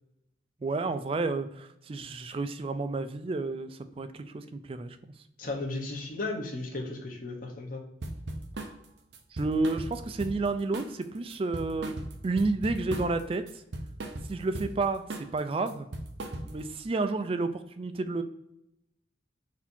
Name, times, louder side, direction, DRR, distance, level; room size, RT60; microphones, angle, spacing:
voice 1, 0.6-5.1 9.3-11.9 12.2-13.4 14.3-15.9 16.4-18.2, right 3 dB, 30° right, 10 dB, 0.3 m, -31 dB
voice 2, 5.4-7.8, left 2 dB, 50° left, 0 dB, 1.0 m, -35 dB
sound 1, 8.0-8.8 9.1-10.5 10.7-11.0 11.3-13.2 13.5-14.7 15.1-15.4 15.7-16.7, right 1 dB, 75° right, 0.6 m, -37 dB
4.1 x 2.8 x 4.2 m, 0.81 s
head